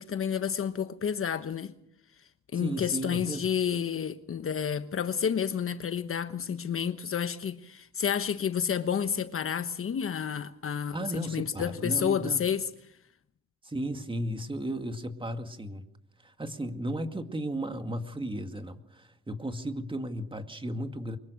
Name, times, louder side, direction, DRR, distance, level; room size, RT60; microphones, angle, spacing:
voice 1, 0.0-1.7 2.5-12.7, left 8 dB, 45° left, 1.1 m, -30 dB
voice 2, 2.6-3.5 10.9-12.4 13.6-15.9 16.2-21.2, right 1 dB, 15° right, 2.2 m, -35 dB
24.5 x 22.0 x 6.4 m
cardioid pair, 90°, 30 cm